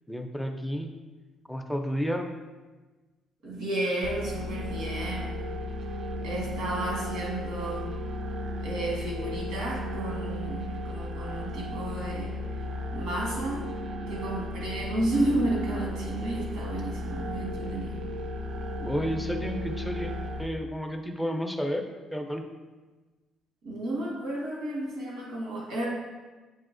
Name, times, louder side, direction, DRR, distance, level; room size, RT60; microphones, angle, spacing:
voice 1, 0.1-0.9 1.5-2.3 18.8-20.1 20.4-21.8 22.1-22.5, equal, ahead, 3 dB, 0.4 m, -31 dB
voice 2, 3.4-5.4 6.2-7.9 8.6-12.4 12.9-13.7 14.1-18.0 23.6-25.9, right 1 dB, 85° right, -3 dB, 1.4 m, -32 dB
sound 1, 4.0-20.5, left 1 dB, 55° right, 0.4 m, -34 dB
7.3 x 2.9 x 2.5 m, 1.3 s
cardioid pair, 120°, 0 cm